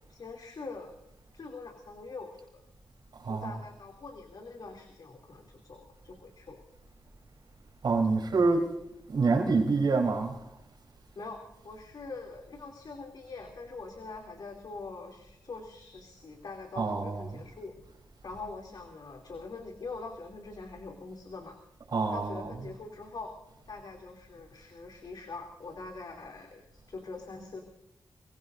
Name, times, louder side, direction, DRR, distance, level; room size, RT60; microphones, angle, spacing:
voice 1, 0.1-0.9 1.3-2.6 3.3-6.6 11.1-17.9 18.2-21.6 22.1-23.3 23.7-27.6, left 3 dB, 65° left, 3.1 m, -43 dB
voice 2, 3.2-3.6 7.8-8.7 9.1-10.4 16.7-17.4 21.9-22.7, right 4 dB, 65° right, 3.9 m, -27 dB
25.0 x 21.5 x 2.7 m
wide cardioid pair, 105°, 8 cm